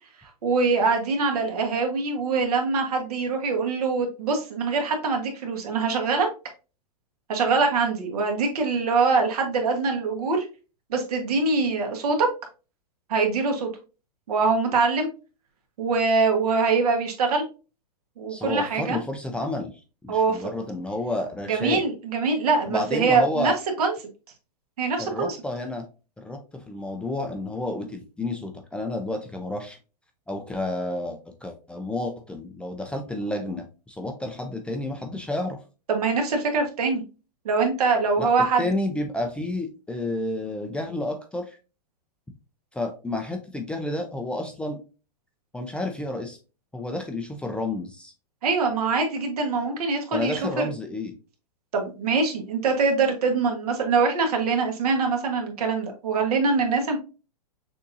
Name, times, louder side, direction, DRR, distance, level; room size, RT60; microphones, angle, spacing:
voice 1, 0.4-6.3 7.3-10.5 10.9-12.3 13.1-13.7 14.3-15.1 15.8-17.4 18.2-19.0 20.1-20.4 21.5-23.5 23.8-23.9 24.8-25.4 35.9-37.0 37.4-38.7 48.4-50.7 51.7-57.0, right 4 dB, 70° right, 3 dB, 1.4 m, -23 dB
voice 2, 18.3-21.8 22.7-23.6 25.0-25.9 26.2-29.8 30.3-35.6 38.2-38.3 38.6-41.6 42.7-44.8 45.5-46.4 46.7-48.1 50.1-51.1, left 2 dB, 5° left, 4 dB, 0.4 m, -30 dB
6.5 x 2.7 x 2.6 m, 0.32 s
hypercardioid pair, 130°, 20 cm